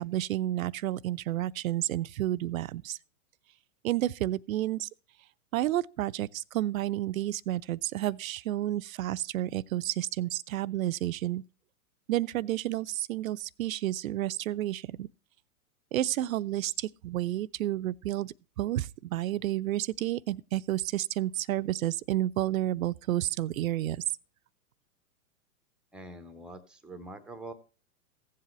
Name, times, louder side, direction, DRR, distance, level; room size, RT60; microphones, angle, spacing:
voice 1, 0.0-3.0 3.8-4.9 5.5-11.4 12.1-15.1 15.9-24.0, right 14 dB, 65° right, 0.5 m, -31 dB
voice 2, 25.9-27.5, right 1 dB, ahead, 0.6 m, -44 dB
15.5 x 7.5 x 3.0 m
hypercardioid pair, 125°, 44 cm